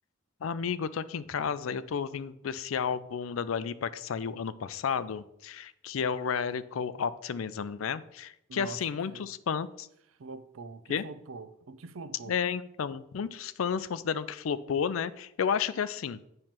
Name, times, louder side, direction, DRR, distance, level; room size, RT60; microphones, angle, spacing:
voice 1, 0.4-9.9 10.9-11.0 12.3-16.2, left 7 dB, 85° left, 0.4 m, -32 dB
voice 2, 8.5-9.3 10.2-12.4, right 3 dB, 85° right, 0.5 m, -44 dB
8.9 x 3.2 x 5.8 m
head